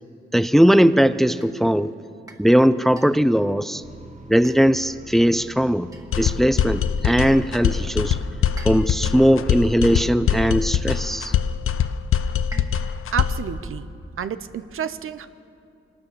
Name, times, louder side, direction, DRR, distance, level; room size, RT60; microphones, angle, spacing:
voice 1, 0.3-1.9 2.4-3.8 4.3-5.9 6.2-8.2 8.6-11.3, equal, ahead, 14 dB, 0.6 m, -19 dB
sound 1, 1.4-1.6 2.3-2.5 3.0-3.3 4.4-4.9 5.9-6.3 7.1-7.4 8.6-9.1 9.9-10.2 10.9-11.2 12.5-13.0, right 2 dB, 15° right, 2.3 m, -45 dB
sound 2, 3.8-10.6, right 2 dB, 35° right, 1.6 m, -44 dB
sound 3, 6.1-13.5, left 8 dB, 80° left, 0.7 m, -23 dB
voice 2, 13.1-13.9 14.2-15.3, right 8 dB, 80° right, 12 dB, 0.9 m, -29 dB
24.5 x 18.5 x 7.0 m, 2.6 s
cardioid pair, 90°, 21 cm